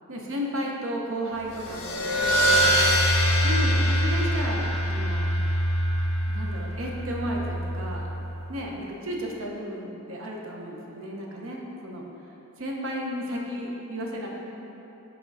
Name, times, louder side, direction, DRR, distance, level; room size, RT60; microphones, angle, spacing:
voice 1, 0.1-2.8 3.4-5.3 6.3-8.2 8.5-12.0 12.6-14.3, equal, 65° right, -1 dB, 0.8 m, -33 dB
sound 1, 1.5-8.5, equal, 70° left, 0.6 m, -24 dB
4.9 x 3.7 x 5.3 m, 3.0 s
head